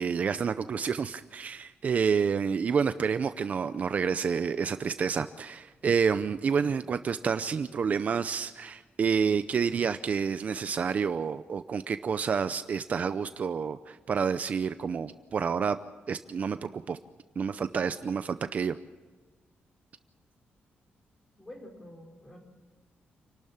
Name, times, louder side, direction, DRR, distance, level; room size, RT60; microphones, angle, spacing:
voice 1, 0.0-15.8 16.1-17.0 17.4-18.8, right 6 dB, 40° right, 11 dB, 0.6 m, -29 dB
voice 2, 21.4-22.4, left 1 dB, 15° left, 2 dB, 4.5 m, -48 dB
28.5 x 12.5 x 8.7 m, 1.3 s
wide cardioid pair, 160°, 4 cm